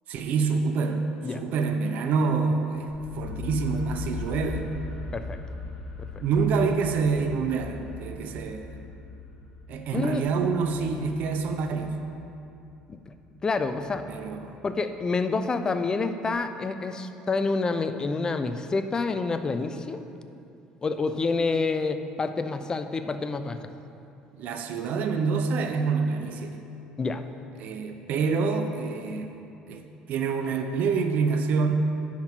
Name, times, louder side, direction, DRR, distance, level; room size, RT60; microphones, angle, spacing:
voice 1, 0.1-4.7 6.2-8.9 9.7-12.0 14.1-14.6 24.4-26.6 27.6-31.7, right 5 dB, 60° right, 6 dB, 0.6 m, -27 dB
sound 1, 2.9-14.7, left 4 dB, 50° left, 1.7 m, -40 dB
voice 2, 13.4-14.1 14.6-20.0 20.8-23.7 27.0-27.2, left 3 dB, 25° left, 9 dB, 0.5 m, -28 dB
10.0 x 5.9 x 4.5 m, 2.7 s
supercardioid pair, 100°, 3 cm